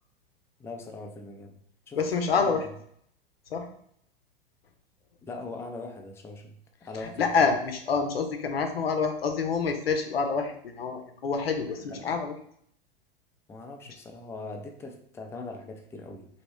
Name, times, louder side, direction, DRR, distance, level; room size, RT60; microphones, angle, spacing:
voice 1, 0.6-1.6 1.9-2.6 5.2-7.6 11.7-12.2 13.5-16.3, left 3 dB, 10° left, 3 dB, 0.4 m, -41 dB
voice 2, 2.0-2.6 3.5-3.7 7.0-12.3, left 5 dB, 90° left, 5 dB, 0.6 m, -27 dB
3.0 x 2.7 x 3.2 m, 0.66 s
hypercardioid pair, 95°, 29 cm